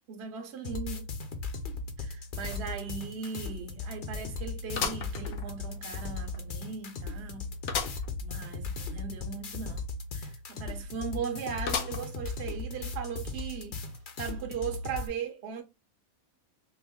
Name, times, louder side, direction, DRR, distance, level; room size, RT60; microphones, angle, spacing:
voice 1, 0.1-1.1 2.0-7.5 8.2-13.8 14.2-15.6, right 6 dB, 55° right, 0.9 m, -38 dB
sound 1, 0.6-15.1, left 3 dB, 50° left, 0.7 m, -37 dB
sound 2, 2.5-2.6 3.0-3.1 4.7-5.8 6.3-6.4 7.7-8.1 8.5-8.6 8.8-8.9 11.7-12.3 12.9-13.0 13.9-14.0, left 6 dB, 80° left, 1.1 m, -34 dB
3.0 x 2.6 x 3.5 m
omnidirectional pair, 1.4 m